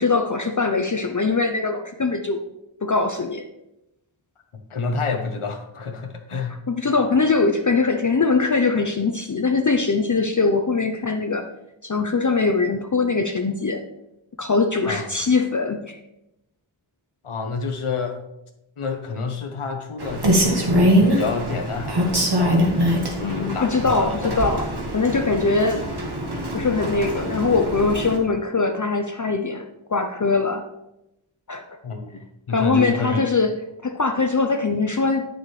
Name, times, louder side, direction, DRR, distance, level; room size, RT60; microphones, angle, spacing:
voice 1, 0.0-2.4 2.8-3.4 6.7-11.5 11.8-13.8 14.4-16.0 23.2-24.7 24.9-25.9 26.5-29.6 29.9-30.6 31.5-31.8 32.5-33.5 33.8-35.3, left 4 dB, 40° left, 5 dB, 0.6 m, -22 dB
voice 2, 4.7-6.9 14.9-15.1 17.2-18.2 18.8-20.7 21.0-22.6 23.0-24.3 31.8-32.2 32.5-33.2, left 4 dB, 85° left, 4 dB, 1.0 m, -29 dB
Rain, 20.0-28.2, equal, 55° right, 1.5 m, -23 dB
8.7 x 6.6 x 3.2 m, 0.89 s
wide cardioid pair, 60°, 49 cm